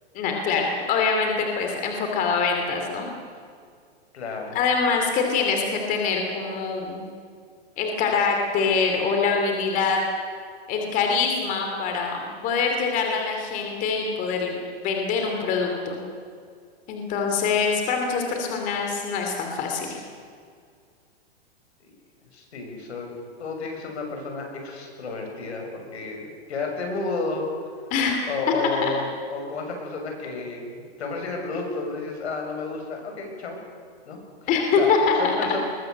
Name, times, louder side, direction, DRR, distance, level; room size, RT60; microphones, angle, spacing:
voice 1, 0.1-3.1 4.5-7.0 7.8-10.0 10.7-16.0 16.9-20.0 27.9-28.3 28.8-28.9 34.5-35.3, left 5 dB, 25° left, 2 dB, 2.8 m, -24 dB
voice 2, 4.1-4.6 22.3-23.1 23.4-27.5 28.3-33.6 34.0-34.5 34.7-34.9 35.2-35.6, left 3 dB, 85° left, 2 dB, 6.8 m, -31 dB
21.5 x 20.0 x 8.1 m, 2.2 s
hypercardioid pair, 160°, 32 cm